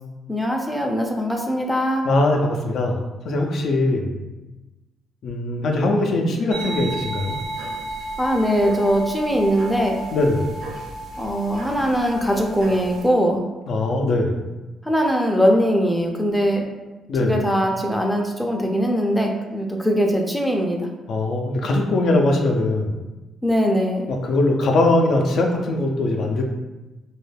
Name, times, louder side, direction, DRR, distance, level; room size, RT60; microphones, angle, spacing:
voice 1, 0.3-2.0 8.2-10.0 11.2-13.4 14.9-16.7 17.2-20.9 23.4-24.0, equal, ahead, 1 dB, 0.4 m, -21 dB
voice 2, 2.0-3.0 3.2-4.1 5.2-7.4 10.1-10.5 13.7-14.4 17.1-17.4 21.1-22.9 24.1-26.4, left 2 dB, 65° left, 2 dB, 0.4 m, -21 dB
sound 1, 6.5-13.0, right 2 dB, 85° right, 0.7 m, -33 dB
2.3 x 2.1 x 3.2 m, 1.1 s
cardioid pair, 90°, 0 cm